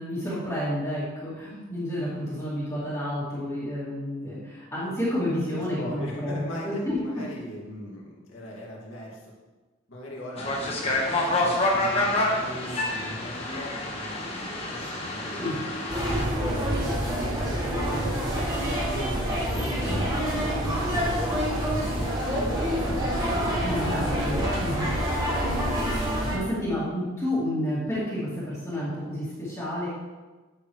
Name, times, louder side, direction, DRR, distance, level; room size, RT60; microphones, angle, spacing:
voice 1, 0.0-7.0 15.3-15.6 23.6-24.9 26.3-29.9, left 1 dB, 15° left, -11 dB, 2.4 m, -30 dB
voice 2, 5.5-9.3 9.9-11.0 11.4-16.6 17.5-24.0 24.3-24.9, equal, 75° left, -4 dB, 2.2 m, -39 dB
sound 1, 10.4-16.2, left 2 dB, 30° left, 1.3 m, -28 dB
sound 2, 15.9-26.4, equal, 20° right, 2.3 m, -27 dB
10.0 x 6.7 x 3.2 m, 1.2 s
head